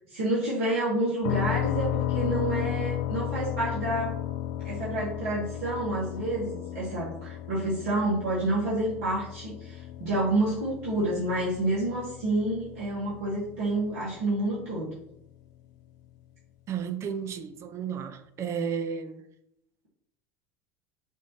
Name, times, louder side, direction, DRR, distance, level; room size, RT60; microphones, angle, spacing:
voice 1, 0.1-4.1 4.6-15.0, right 2 dB, 65° right, 2.3 m, -29 dB
sound 1, 1.2-14.9, left 12 dB, 60° left, 0.4 m, -34 dB
voice 2, 16.7-19.2, right 7 dB, 40° right, 0.8 m, -33 dB
7.0 x 3.2 x 4.3 m
hypercardioid pair, 75°, 7 cm